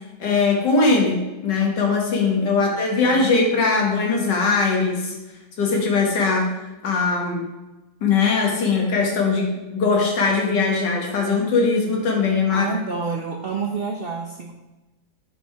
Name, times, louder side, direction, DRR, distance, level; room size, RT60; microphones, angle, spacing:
voice 1, 0.2-5.1 5.6-6.5 6.8-7.4 8.0-12.7, left 4 dB, 65° left, 0 dB, 2.2 m, -20 dB
voice 2, 3.1-3.4 12.5-14.5, right 4 dB, 70° right, 1 dB, 0.5 m, -29 dB
9.2 x 5.2 x 4.6 m, 1.1 s
omnidirectional pair, 2.0 m